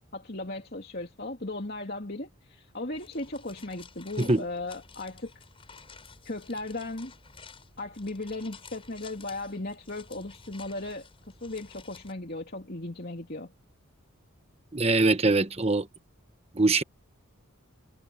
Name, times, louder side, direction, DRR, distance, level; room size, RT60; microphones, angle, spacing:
voice 1, 0.0-5.3 6.2-7.1 7.8-13.5, left 2 dB, 45° left, 3.0 m, -37 dB
sound 1, 2.9-12.1, left 5 dB, 25° left, 5.9 m, -52 dB
voice 2, 14.7-15.9 16.6-16.8, right 3 dB, 25° right, 1.2 m, -23 dB
head